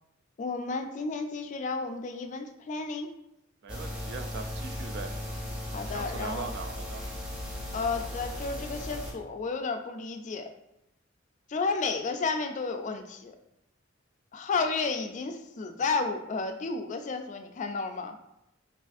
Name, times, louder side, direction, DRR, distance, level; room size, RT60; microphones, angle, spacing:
voice 1, 0.4-3.1 5.7-6.5 7.7-10.5 11.5-13.4 14.3-18.2, left 4 dB, 35° left, 6 dB, 0.3 m, -32 dB
voice 2, 3.6-5.2 5.9-7.0, right 4 dB, 55° right, 6 dB, 0.4 m, -40 dB
sound 1, 3.7-9.1, equal, 5° right, 0.7 m, -37 dB
4.8 x 2.4 x 2.5 m, 0.85 s
head